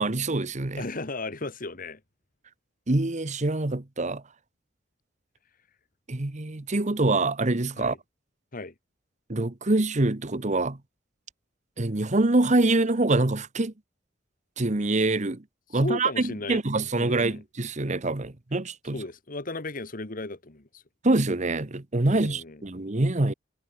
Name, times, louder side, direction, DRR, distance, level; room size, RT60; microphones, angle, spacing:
voice 1, 0.0-0.8 2.9-4.2 6.1-7.9 9.3-10.8 11.8-13.7 14.6-15.4 15.7-16.1 16.5-19.0 21.0-23.3, right 2 dB, 40° right, 1.2 m, -25 dB
voice 2, 0.8-2.0 7.8-8.0 8.5-8.7 15.7-16.6 17.0-17.4 18.9-20.8 22.0-22.6, left 2 dB, 45° left, 1.8 m, -35 dB
head